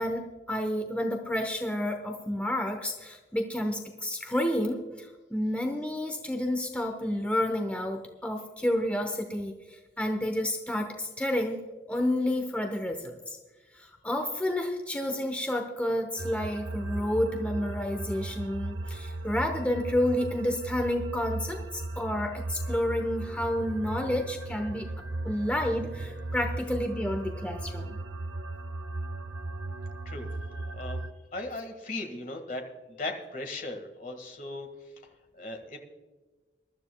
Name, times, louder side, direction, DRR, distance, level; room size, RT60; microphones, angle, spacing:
voice 1, 0.0-9.6 10.0-11.6 11.9-13.4 13.8-24.9 25.2-28.0, left 1 dB, 10° left, 4 dB, 0.9 m, -30 dB
sound 1, 16.2-31.1, right 2 dB, 90° right, 0.7 m, -37 dB
voice 2, 30.6-31.0 31.3-32.6 33.0-34.7 35.3-35.8, left 2 dB, 45° left, 4 dB, 1.7 m, -37 dB
22.5 x 12.5 x 2.3 m, 1.3 s
head